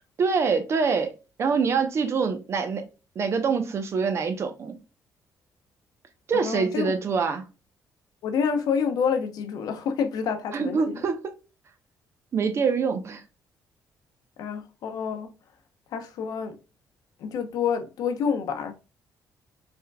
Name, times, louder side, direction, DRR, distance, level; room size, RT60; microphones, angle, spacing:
voice 1, 0.2-1.1 1.4-2.8 3.1-4.7 6.3-7.5 10.5-11.3 12.3-13.2, right 5 dB, 45° right, 0.9 m, -25 dB
voice 2, 6.4-6.9 8.2-11.0 14.4-15.3 15.9-16.5 17.2-18.7, left 6 dB, 75° left, 0.9 m, -28 dB
5.1 x 3.6 x 2.3 m
cardioid pair, 135°, 7 cm